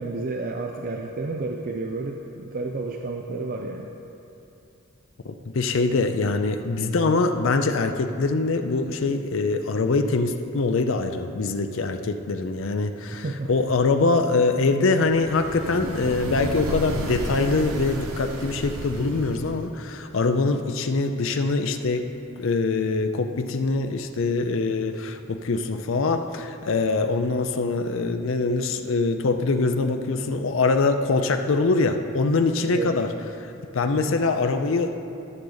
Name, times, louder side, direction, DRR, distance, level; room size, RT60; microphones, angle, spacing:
voice 1, 0.0-3.9 13.1-13.5 32.6-33.0 34.1-34.2, right 3 dB, 40° right, 2 dB, 0.4 m, -31 dB
voice 2, 5.2-22.1 22.4-33.1 33.4-35.0, left 3 dB, 60° left, 6 dB, 0.5 m, -23 dB
sound 1, 15.0-19.8, right 1 dB, 80° right, 0.9 m, -32 dB
13.5 x 6.4 x 3.9 m, 2.9 s
head